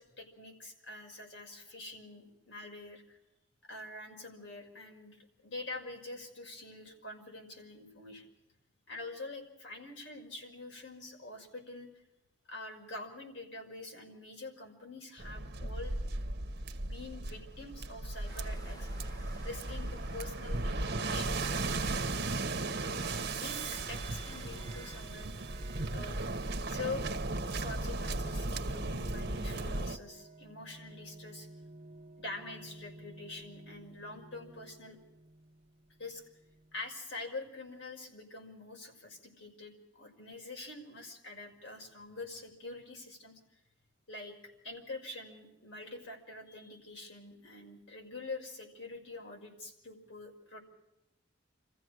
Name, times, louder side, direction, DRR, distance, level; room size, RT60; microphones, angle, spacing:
voice 1, 0.0-3.2 3.7-8.2 8.9-11.9 12.5-16.0 16.8-18.9 19.4-22.9 23.2-25.4 25.9-26.2 26.7-27.1 27.6-31.5 32.2-35.0 36.0-36.2 36.7-43.4 44.1-44.4 44.6-50.6, left 2 dB, 70° left, 2 dB, 5.9 m, -45 dB
Waves surf, 15.2-30.0, right 2 dB, 55° right, 1.1 m, -36 dB
sound 1, 18.3-25.1, equal, 20° left, 1.2 m, -55 dB
sound 2, 23.4-37.0, right 3 dB, 30° right, 1.0 m, -53 dB
27.5 x 15.0 x 6.4 m, 0.88 s
head